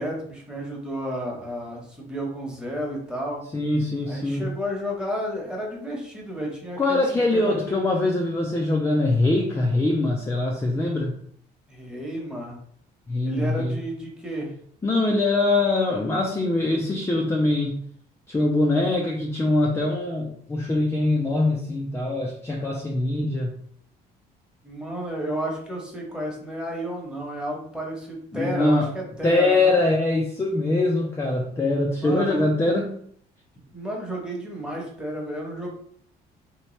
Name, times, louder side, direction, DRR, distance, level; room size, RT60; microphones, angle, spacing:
voice 1, 0.0-3.4 4.0-7.8 11.7-12.6 13.2-14.5 24.6-29.8 32.0-32.5 33.7-35.7, equal, 5° right, -2 dB, 1.1 m, -32 dB
voice 2, 3.5-4.4 6.8-11.1 13.1-13.8 14.8-17.8 18.3-23.5 28.3-28.9 29.2-33.0, left 2 dB, 15° left, 0 dB, 0.5 m, -23 dB
3.2 x 2.9 x 3.1 m, 0.63 s
cardioid pair, 110°, 17 cm